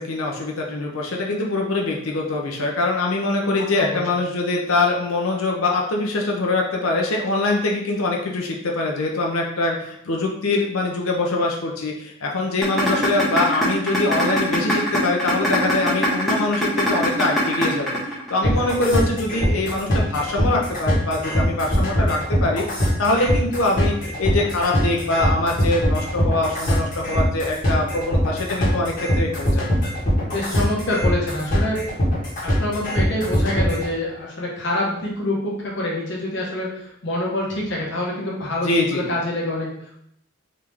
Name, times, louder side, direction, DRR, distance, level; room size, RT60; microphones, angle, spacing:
voice 1, 0.0-22.6 23.0-29.7 38.6-39.1, left 2 dB, 85° left, 0 dB, 0.7 m, -23 dB
sound 1, 12.6-18.6, right 1 dB, ahead, 1.1 m, -22 dB
sound 2, 18.4-33.9, equal, 40° left, 1.4 m, -22 dB
voice 2, 30.3-31.8 32.4-39.7, left 1 dB, 55° left, -3 dB, 1.2 m, -26 dB
3.7 x 3.2 x 3.4 m, 0.73 s
head